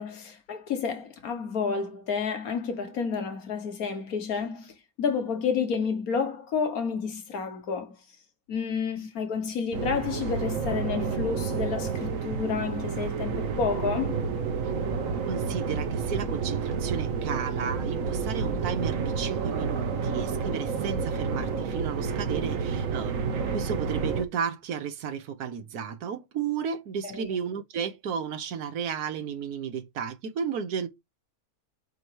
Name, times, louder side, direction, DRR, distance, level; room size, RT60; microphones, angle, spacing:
voice 1, 0.0-4.7 5.0-8.0 8.5-14.2 27.0-27.3, left 6 dB, 75° left, 1.7 m, -30 dB
sound 1, 9.7-24.3, right 5 dB, 65° right, 1.3 m, -30 dB
voice 2, 15.3-23.2 23.5-30.9, right 7 dB, 90° right, 1.4 m, -33 dB
7.9 x 2.9 x 4.5 m
omnidirectional pair, 1.5 m